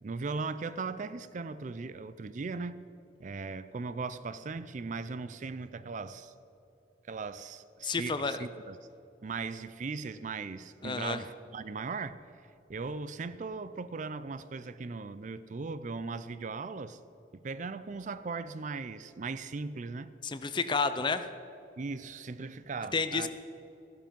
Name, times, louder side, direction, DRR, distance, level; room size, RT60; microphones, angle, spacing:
voice 1, 0.0-2.8 3.2-6.3 7.1-8.8 9.2-12.2 12.7-17.0 17.3-20.1 21.8-23.3, right 4 dB, 45° right, 14 dB, 0.4 m, -38 dB
voice 2, 7.8-8.4 10.8-11.2 20.2-21.2 22.9-23.3, left 4 dB, 25° left, 11 dB, 0.5 m, -30 dB
14.5 x 12.0 x 5.3 m, 2.8 s
head